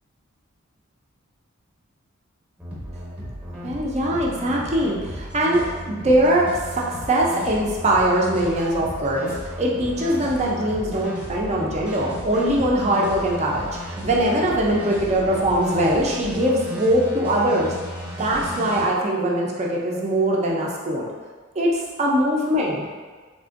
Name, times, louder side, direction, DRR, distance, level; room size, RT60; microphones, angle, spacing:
sound 1, 2.6-18.8, equal, 5° right, 0.8 m, -35 dB
voice 1, 3.6-17.7 18.2-21.1 21.6-22.8, right 1 dB, 35° right, -3 dB, 0.5 m, -22 dB
3.6 x 2.5 x 2.5 m, 1.4 s
head